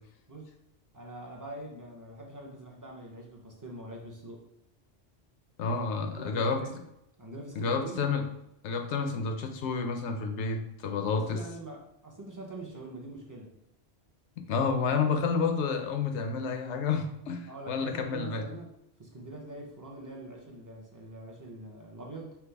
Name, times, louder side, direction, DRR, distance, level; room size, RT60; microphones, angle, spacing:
voice 1, 0.9-4.5 5.9-6.8 7.2-8.0 11.1-13.6 17.5-18.7 19.0-22.4, right 2 dB, 25° right, -1 dB, 0.5 m, -44 dB
voice 2, 5.6-6.6 7.6-8.2 8.6-11.4 14.5-18.4, left 5 dB, 85° left, 5 dB, 0.9 m, -30 dB
5.8 x 2.0 x 3.3 m, 0.82 s
omnidirectional pair, 1.1 m